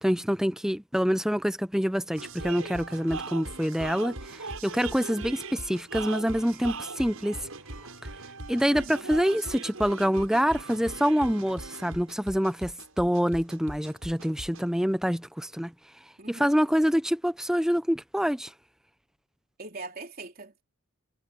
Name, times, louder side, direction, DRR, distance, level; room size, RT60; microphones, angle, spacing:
voice 1, 0.0-7.4 8.5-15.7 16.3-18.5, equal, ahead, 0.7 m, -26 dB
sound 1, 2.2-14.7, right 3 dB, 85° right, 7.5 m, -40 dB
voice 2, 8.7-9.1 16.2-16.6 19.6-20.6, right 3 dB, 45° right, 3.5 m, -42 dB
head